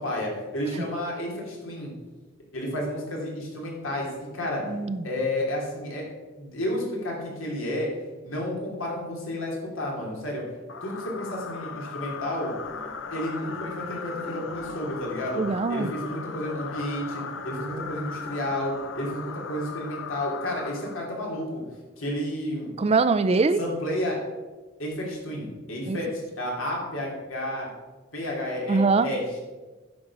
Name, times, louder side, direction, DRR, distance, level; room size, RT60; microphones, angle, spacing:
voice 1, 0.0-1.9 2.5-4.1 4.3-4.7 5.0-6.1 6.4-7.9 8.2-10.4 10.8-12.5 13.1-15.4 15.7-21.6 22.0-22.7 23.6-24.1 24.8-27.7 28.1-29.4, left 1 dB, 80° left, -2 dB, 3.0 m, -31 dB
voice 2, 4.7-5.0 15.4-15.9 22.8-23.6 25.9-26.0 28.7-29.1, right 4 dB, 30° right, 12 dB, 0.4 m, -22 dB
sound 1, 10.7-21.4, left 5 dB, 65° left, 0.8 m, -38 dB
9.6 x 5.3 x 6.1 m, 1.3 s
head